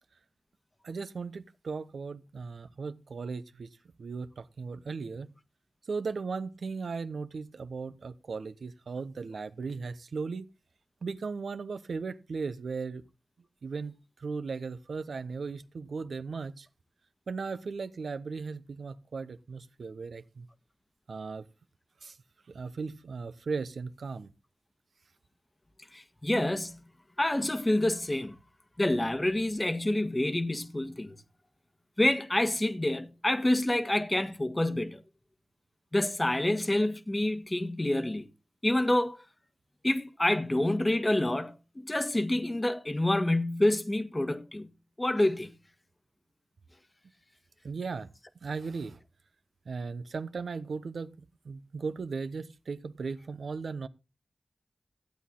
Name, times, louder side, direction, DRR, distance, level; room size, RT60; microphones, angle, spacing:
voice 1, 0.8-3.7 4.0-5.3 5.9-10.4 11.0-13.0 13.6-16.7 17.3-20.5 21.1-21.4 22.0-22.2 22.5-24.3 47.6-48.1 48.4-49.0 49.7-51.1 51.4-53.9, right 4 dB, 85° right, 0.9 m, -37 dB
voice 2, 25.9-26.8 27.2-28.3 28.8-31.1 32.0-35.0 35.9-38.3 38.6-39.2 39.8-44.7 45.0-45.5, left 1 dB, 25° left, 1.4 m, -27 dB
15.0 x 8.5 x 3.7 m
cardioid pair, 40°, 0 cm